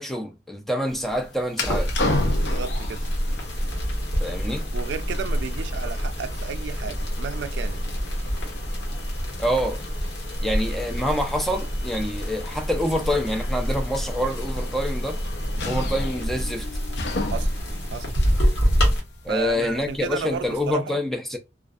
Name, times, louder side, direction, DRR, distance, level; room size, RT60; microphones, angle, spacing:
voice 1, 0.0-1.9 4.2-4.7 9.4-9.8 10.4-15.2 15.6-16.7 19.2-21.4, equal, ahead, 0.3 m, -26 dB
sound 1, 0.9-20.7, left 2 dB, 65° left, 0.5 m, -35 dB
sound 2, 1.6-19.0, equal, 85° left, 1.1 m, -27 dB
voice 2, 2.3-3.0 4.7-7.8 17.3-17.5 17.9-18.1 19.3-21.0, right 6 dB, 75° right, 0.3 m, -33 dB
2.5 x 2.3 x 2.3 m
head